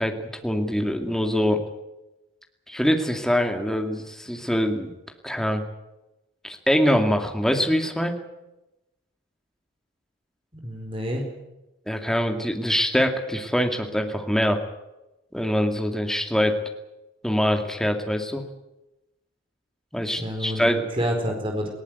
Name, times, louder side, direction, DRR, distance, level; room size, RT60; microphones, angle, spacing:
voice 1, 0.0-1.6 2.7-4.9 5.2-5.6 6.4-8.2 11.9-14.6 15.3-16.6 17.2-18.4 19.9-20.8, equal, ahead, 4 dB, 2.3 m, -24 dB
voice 2, 10.5-11.3 20.2-20.7 21.0-21.7, equal, 30° right, 2 dB, 4.5 m, -28 dB
19.5 x 18.0 x 9.5 m, 0.97 s
head